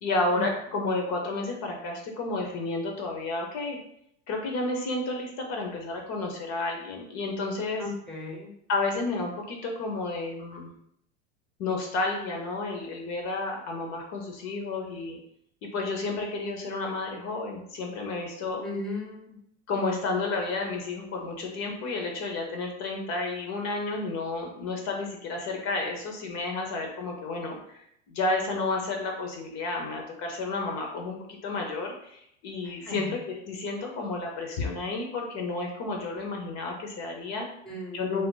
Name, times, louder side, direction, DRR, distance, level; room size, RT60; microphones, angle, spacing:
voice 1, 0.0-3.8 4.3-7.8 8.7-10.7 11.6-15.2 15.7-18.6 19.7-27.8 28.1-31.1 31.4-37.5 37.9-38.3, left 3 dB, 45° left, 2 dB, 0.7 m, -31 dB
voice 2, 7.8-8.5 18.6-19.3 32.8-33.0 37.7-38.1, left 2 dB, ahead, -2 dB, 0.7 m, -36 dB
2.6 x 2.1 x 3.7 m, 0.73 s
hypercardioid pair, 100°, 36 cm